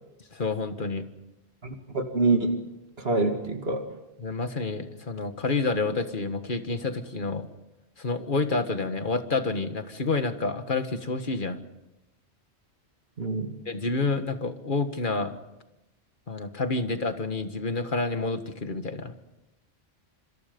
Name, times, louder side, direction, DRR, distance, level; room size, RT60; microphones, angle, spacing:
voice 1, 0.3-1.0 4.2-7.5 8.0-11.6 13.7-15.3 16.3-19.1, left 3 dB, 50° left, 8 dB, 1.8 m, -29 dB
voice 2, 1.6-3.9 13.2-13.6, right 3 dB, 65° right, 5 dB, 2.4 m, -26 dB
26.5 x 26.0 x 5.3 m, 0.95 s
omnidirectional pair, 1.1 m